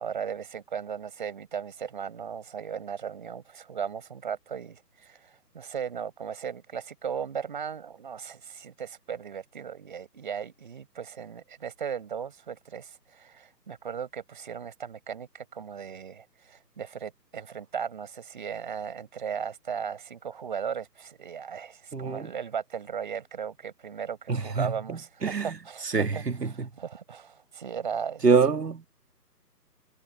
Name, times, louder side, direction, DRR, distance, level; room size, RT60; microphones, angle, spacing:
voice 1, 0.0-26.2 26.5-28.3, right 7 dB, 30° right, 5.4 m, -37 dB
voice 2, 21.9-22.3 24.3-25.6 25.8-26.7 28.2-28.9, right 5 dB, 70° right, 1.9 m, -26 dB
figure-of-eight pair, 170°, 50 cm